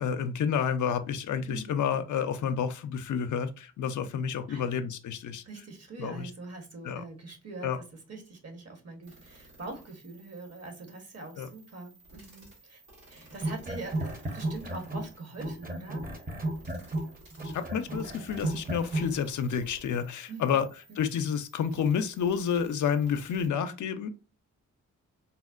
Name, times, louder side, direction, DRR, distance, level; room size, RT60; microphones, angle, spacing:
voice 1, 0.0-5.4 6.0-6.3 6.8-7.0 7.6-7.8 11.4-11.5 17.4-20.7 21.0-24.1, left 7 dB, 60° left, 9 dB, 0.5 m, -30 dB
voice 2, 1.4-1.8 4.5-4.7 5.4-12.8 13.1-16.0 20.3-20.6, right 3 dB, 45° right, 4 dB, 1.1 m, -43 dB
sound 1, 9.0-23.5, right 2 dB, 85° right, 1.6 m, -56 dB
sound 2, 13.3-15.1 15.4-19.1, right 1 dB, 25° right, 0.8 m, -33 dB
4.0 x 2.1 x 2.3 m, 0.32 s
supercardioid pair, 50°, 34 cm